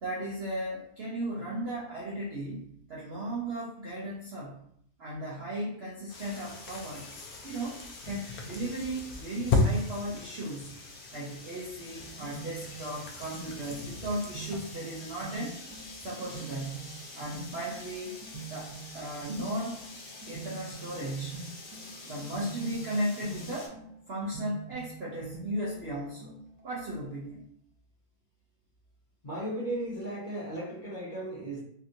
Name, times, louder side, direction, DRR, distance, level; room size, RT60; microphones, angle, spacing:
voice 1, 0.0-4.6 5.0-7.1 7.4-10.7 11.1-15.6 16.0-16.9 17.1-18.2 18.5-19.8 20.3-21.4 22.0-23.8 24.1-26.3 26.6-27.4, right 1 dB, 55° right, -5 dB, 0.7 m, -36 dB
sound 1, 6.1-14.6, left 3 dB, 75° left, 1.0 m, -35 dB
sound 2, 6.1-23.7, left 2 dB, 55° left, 0.6 m, -47 dB
sound 3, 11.9-26.7, right 4 dB, 80° right, 1.4 m, -46 dB
voice 2, 29.2-31.6, right 1 dB, 35° left, -8 dB, 1.3 m, -35 dB
3.3 x 2.8 x 2.5 m, 0.67 s
omnidirectional pair, 1.6 m